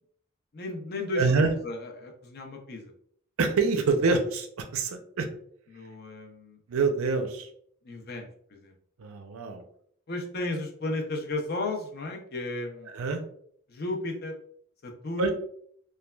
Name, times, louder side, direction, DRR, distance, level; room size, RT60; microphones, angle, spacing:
voice 1, 0.5-2.9 5.7-6.6 7.8-8.7 10.1-12.9 13.7-14.4 14.8-15.3, left 2 dB, 50° left, 3 dB, 0.5 m, -34 dB
voice 2, 1.2-1.5 3.4-5.3 6.7-7.5 9.0-9.6 12.9-13.2 15.2-15.3, right 4 dB, 80° right, 6 dB, 0.5 m, -26 dB
3.1 x 2.2 x 2.2 m, 0.64 s
head